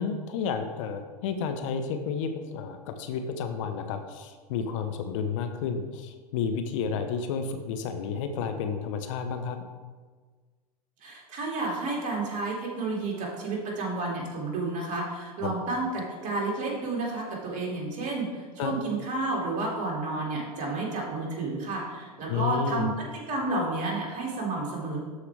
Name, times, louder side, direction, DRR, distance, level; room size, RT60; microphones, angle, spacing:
voice 1, 0.0-9.6 15.4-15.6 18.6-18.8 22.3-22.9, left 6 dB, 55° left, 6 dB, 0.8 m, -31 dB
voice 2, 11.0-25.0, right 2 dB, 40° right, -2 dB, 2.7 m, -31 dB
12.5 x 4.8 x 3.5 m, 1.5 s
figure-of-eight pair, 90°, 20 cm